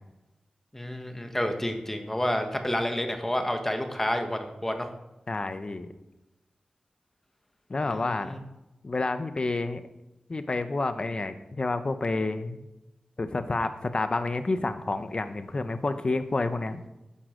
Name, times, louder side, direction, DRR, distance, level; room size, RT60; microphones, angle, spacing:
voice 1, 0.7-4.9 7.8-8.4, left 1 dB, 15° left, 5 dB, 1.4 m, -29 dB
voice 2, 5.3-5.9 7.7-8.3 8.8-9.8 10.3-12.7 13.2-16.9, left 3 dB, 40° left, 10 dB, 1.0 m, -29 dB
12.5 x 9.8 x 5.1 m, 0.96 s
wide cardioid pair, 120°, 2 cm